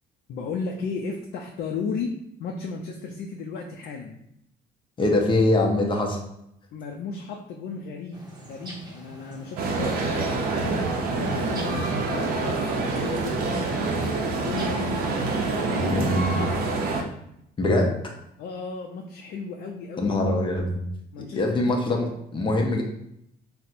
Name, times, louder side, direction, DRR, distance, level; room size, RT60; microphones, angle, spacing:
voice 1, 0.3-4.2 6.7-10.9 11.1-13.9 14.2-15.8 16.2-16.8 18.4-20.3 21.1-22.1, left 4 dB, 70° left, 1 dB, 0.4 m, -35 dB
voice 2, 5.0-6.2 15.7-16.4 17.6-17.9 20.0-20.8 21.2-22.1 22.3-22.8, left 2 dB, 30° left, 2 dB, 0.7 m, -23 dB
sound 1, 8.1-15.9, right 1 dB, 25° right, 0.8 m, -43 dB
sound 2, 9.6-17.0, right 3 dB, 60° right, 0.5 m, -26 dB
4.1 x 2.1 x 2.5 m, 0.76 s
cardioid pair, 110°, 17 cm